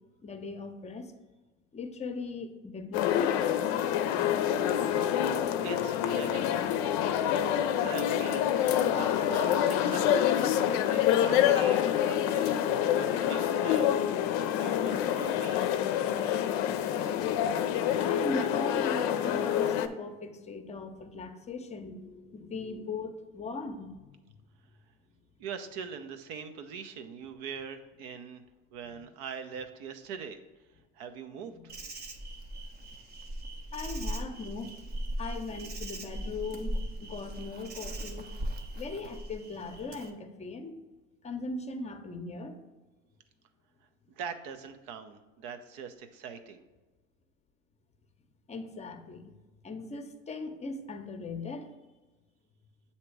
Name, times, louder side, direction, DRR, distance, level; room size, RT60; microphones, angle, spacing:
voice 1, 0.2-1.1 1.7-3.3 18.0-24.1 33.7-34.7 35.2-36.8 37.0-38.3 38.7-40.8 41.2-42.6 48.5-49.3 49.6-51.7, left 3 dB, 20° left, 7 dB, 0.7 m, -39 dB
sound 1, 2.9-19.9, left 10 dB, 60° left, 0.5 m, -27 dB
voice 2, 5.6-6.8 7.8-8.7 8.9-10.4 10.9-12.5 12.9-15.8 25.4-28.4 28.7-30.4 31.0-31.6 44.1-46.6, right 6 dB, 65° right, 8 dB, 0.7 m, -42 dB
Insect, 31.7-40.1, right 1 dB, 30° right, 0.7 m, -38 dB
7.6 x 2.9 x 4.6 m, 1.2 s
hypercardioid pair, 90°, 32 cm